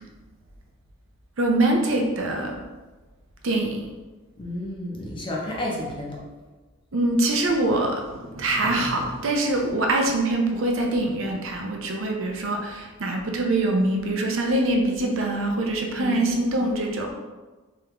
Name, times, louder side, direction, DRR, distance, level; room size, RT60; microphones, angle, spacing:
voice 1, 1.4-2.6 3.4-3.8 6.9-17.1, right 2 dB, 65° right, 1 dB, 0.6 m, -24 dB
voice 2, 4.4-6.2 15.9-16.3, left 1 dB, 25° left, -2 dB, 0.6 m, -31 dB
3.5 x 3.5 x 2.9 m, 1.2 s
head